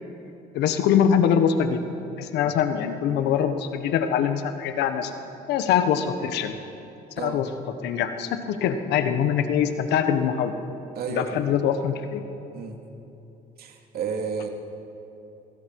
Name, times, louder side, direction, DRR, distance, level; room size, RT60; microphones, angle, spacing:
voice 1, 0.5-1.9 2.2-5.1 5.5-6.5 7.2-7.5 7.8-10.5 11.1-12.2, left 8 dB, 85° left, 8 dB, 1.3 m, -23 dB
voice 2, 10.9-11.4 12.5-12.8 13.6-14.5, right 6 dB, 65° right, 3 dB, 2.6 m, -32 dB
26.0 x 21.5 x 4.8 m, 2.9 s
cardioid pair, 110°, 17 cm